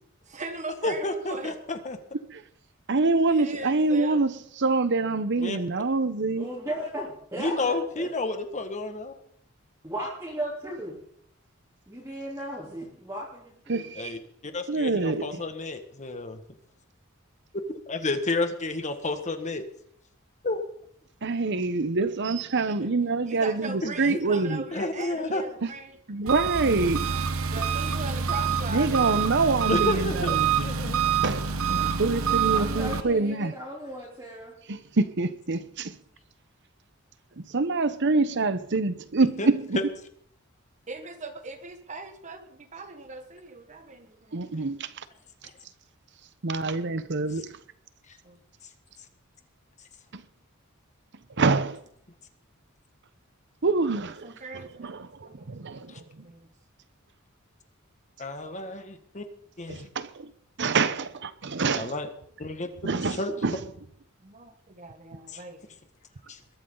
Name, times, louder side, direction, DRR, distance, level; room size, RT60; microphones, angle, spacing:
voice 1, 0.2-1.6 3.3-4.2 22.6-26.0 27.4-29.2 40.9-44.4 48.2-48.4 54.2-56.5 64.2-65.6, right 3 dB, 35° right, 1.5 m, -40 dB
voice 2, 0.8-2.0 5.4-5.6 7.4-9.1 14.0-14.2 14.4-16.4 17.9-19.6 20.4-20.6 23.8-24.2 24.5-25.4 29.7-31.0 39.4-39.5 55.9-56.0 58.2-59.2 59.6-59.9 61.8-62.1 62.4-62.7 63.2-63.3 65.3-65.4 66.3-66.4, left 2 dB, 35° left, 1.7 m, -31 dB
voice 3, 2.9-6.5 13.7-14.2 14.7-15.4 21.2-24.6 25.6-25.7 26.1-27.1 28.7-30.6 31.2-33.6 34.7-35.9 37.4-39.8 44.3-44.9 46.4-47.5 50.1-50.2 51.4-51.8 53.6-54.3 54.8-56.2 59.7-60.3 60.6-61.9 62.8-63.6, right 3 dB, 60° right, 0.9 m, -26 dB
voice 4, 6.4-8.1 9.8-10.9 11.9-13.9 32.5-34.5, right 1 dB, 15° right, 3.5 m, -36 dB
Engine, 26.3-33.0, right 7 dB, 85° right, 1.1 m, -26 dB
21.5 x 12.5 x 3.9 m
head